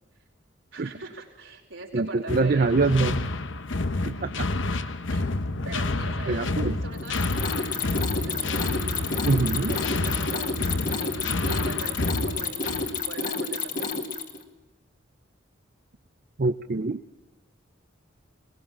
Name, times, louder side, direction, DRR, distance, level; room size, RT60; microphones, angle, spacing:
voice 1, 0.7-2.7 4.1-4.4 5.1-5.2 5.6-9.4 9.7-11.2 11.4-14.0, right 2 dB, 75° right, -1 dB, 4.7 m, -42 dB
voice 2, 1.9-3.2 4.0-4.5 4.8-4.9 6.3-6.8 9.2-9.8 16.4-17.0, right 3 dB, 50° right, 8 dB, 0.6 m, -24 dB
sound 1, 2.3-13.0, left 2 dB, 70° left, 1.1 m, -29 dB
Mechanisms, 7.0-14.4, left 4 dB, 45° left, 2.1 m, -30 dB
21.5 x 20.5 x 7.3 m, 1.1 s
head